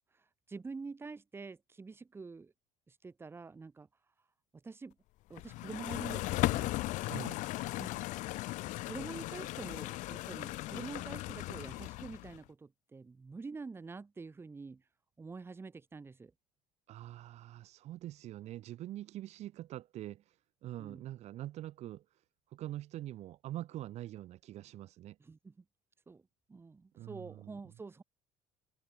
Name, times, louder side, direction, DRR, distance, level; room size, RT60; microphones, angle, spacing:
voice 1, 0.5-2.5 2.9-3.9 4.6-4.9 5.3-6.7 7.8-8.1 8.8-14.8 15.2-16.3 20.8-21.0 25.2-25.5 26.1-26.2 26.5-28.0, right 4 dB, 15° right, 4.1 m, -46 dB
sound 1, 5.4-12.4, left 19 dB, 65° left, 1.4 m, -37 dB
voice 2, 7.0-7.4 16.9-20.2 20.6-22.0 22.5-25.2 27.0-27.7, right 14 dB, 55° right, 4.3 m, -44 dB
cardioid pair, 140°, 14 cm